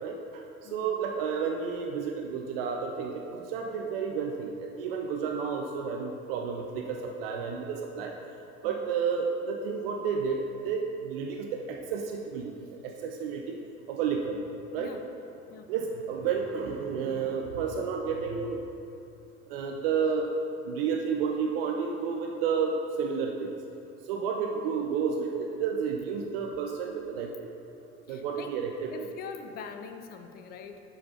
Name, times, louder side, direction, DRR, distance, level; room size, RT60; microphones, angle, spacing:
voice 1, 0.0-8.2 8.6-13.6 13.9-14.4 14.7-14.9 15.7-18.6 19.5-20.3 20.7-23.5 24.0-27.5 28.1-29.1, right 6 dB, 55° right, 1 dB, 0.5 m, -31 dB
voice 2, 24.3-24.7 28.1-28.5 28.9-30.8, left 6 dB, 30° left, 7 dB, 0.4 m, -44 dB
9.7 x 4.2 x 2.8 m, 2.7 s
figure-of-eight pair, 65°, 34 cm